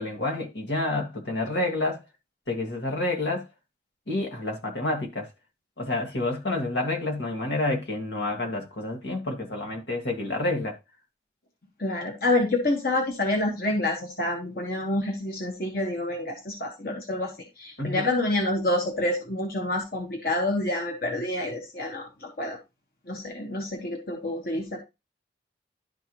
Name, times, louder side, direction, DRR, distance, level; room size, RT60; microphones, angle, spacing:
voice 1, 0.0-2.0 2.5-3.5 4.1-5.3 5.8-10.7 17.8-18.1, left 2 dB, 80° left, 2.0 m, -29 dB
voice 2, 11.8-17.3 17.6-22.6 23.1-24.8, left 2 dB, 55° left, 1.5 m, -28 dB
11.5 x 4.7 x 3.1 m
head